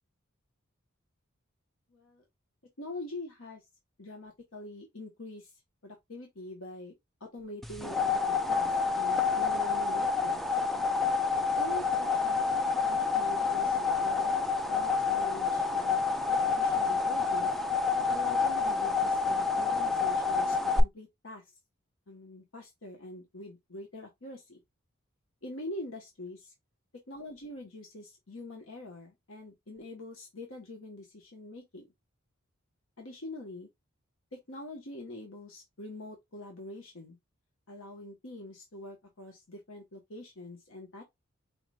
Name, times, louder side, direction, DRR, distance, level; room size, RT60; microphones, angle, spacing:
voice 1, 1.9-2.2 2.8-3.6 4.0-5.5 5.8-6.9 7.2-10.5 11.6-12.4 12.8-16.0 16.3-17.5 18.1-21.4 22.1-24.6 25.4-26.5 27.1-31.9 33.0-33.7 34.3-37.2 37.7-41.0, left 1 dB, 70° left, 1.2 m, -44 dB
sound 1, 7.6-20.8, left 4 dB, ahead, 0.4 m, -28 dB
4.9 x 3.3 x 2.3 m
head